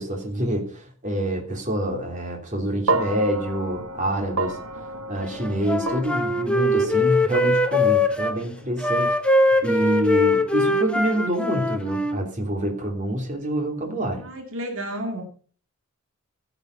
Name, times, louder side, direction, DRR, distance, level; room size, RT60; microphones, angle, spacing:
voice 1, 0.0-4.6 5.1-14.2, right 1 dB, 35° right, 2 dB, 3.0 m, -26 dB
sound 1, 2.9-11.2, right 3 dB, 90° right, 1.2 m, -33 dB
Wind instrument woodwind instrument, 5.4-8.4 8.8-12.2, left 2 dB, 5° left, 1.0 m, -22 dB
voice 2, 14.2-15.2, equal, 70° right, 4 dB, 2.1 m, -31 dB
14.5 x 8.1 x 5.3 m, 0.42 s
head